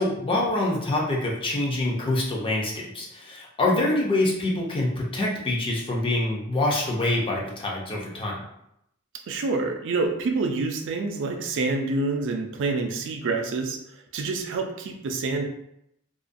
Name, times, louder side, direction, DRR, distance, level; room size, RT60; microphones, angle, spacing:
voice 1, 0.0-8.4, left 2 dB, 25° left, -3 dB, 0.5 m, -25 dB
voice 2, 9.3-13.8 14.1-15.4, right 3 dB, 60° right, 3 dB, 0.3 m, -27 dB
2.4 x 2.2 x 2.5 m, 0.78 s
head